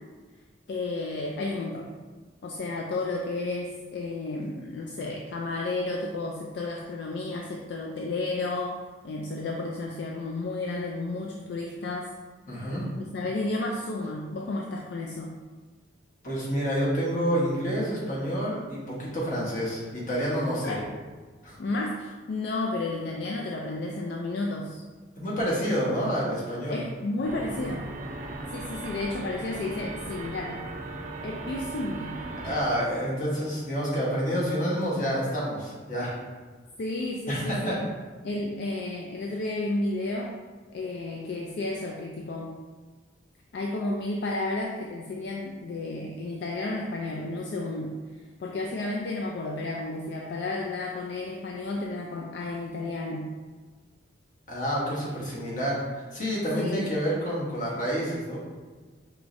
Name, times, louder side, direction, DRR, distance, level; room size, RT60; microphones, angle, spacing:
voice 1, 0.7-1.9 2.4-12.1 13.0-15.4 20.6-20.9 21.6-24.8 26.7-27.9 28.5-30.6 31.2-32.2 32.4-32.6 36.8-37.8 38.2-40.4 40.7-42.6 43.5-48.0 48.4-53.3 56.6-56.9, left 2 dB, 60° left, 0 dB, 0.3 m, -32 dB
voice 2, 12.5-12.8 16.2-20.8 21.4-21.6 25.2-26.8 32.4-36.2 37.3-37.8 54.5-58.4, equal, 40° left, -6 dB, 1.1 m, -28 dB
sound 1, 27.2-32.6, right 2 dB, 40° right, 0.3 m, -37 dB
4.7 x 3.0 x 2.6 m, 1.4 s
head